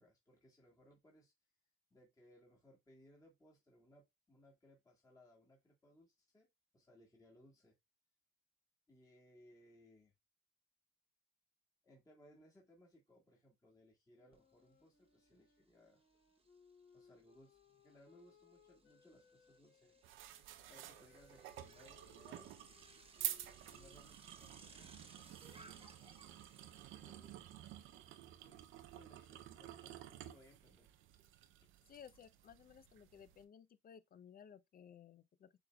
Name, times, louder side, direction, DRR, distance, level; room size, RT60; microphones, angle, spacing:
voice 1, 0.0-1.3 1.9-6.5 6.7-7.8 8.9-10.1 11.8-16.0 16.9-20.2 20.7-22.8 23.5-25.9 26.9-27.3 28.4-30.9, left 1 dB, 15° left, 1.7 m, -66 dB
Wind instrument woodwind instrument, 14.1-20.0 20.7-26.6, left 6 dB, 75° left, 3.0 m, -70 dB
Bicycle, 14.3-14.4 14.8-28.6, right 3 dB, 30° right, 0.9 m, -65 dB
sound 1, 20.0-33.4, right 12 dB, 90° right, 0.6 m, -50 dB
voice 2, 31.9-35.5, left 8 dB, 45° left, 0.5 m, -58 dB
6.7 x 3.5 x 2.3 m
cardioid pair, 90°, 20 cm